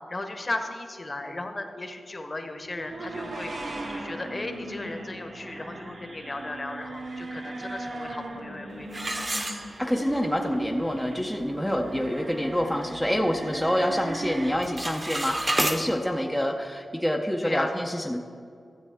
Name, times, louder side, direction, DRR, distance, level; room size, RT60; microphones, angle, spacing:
voice 1, 0.1-3.5 3.9-9.0 17.4-17.7, left 2 dB, 30° left, 5 dB, 0.9 m, -35 dB
sound 1, 2.7-14.5, right 2 dB, 55° right, 1.2 m, -38 dB
sound 2, 8.9-10.2 10.6-10.7 11.3-11.4 11.8-12.1 12.5-13.6 13.9-14.3 14.5-15.8, right 1 dB, 30° right, 0.9 m, -30 dB
voice 2, 9.8-18.2, equal, ahead, 1 dB, 0.5 m, -27 dB
13.5 x 8.0 x 3.5 m, 2.4 s
wide cardioid pair, 115°, 0 cm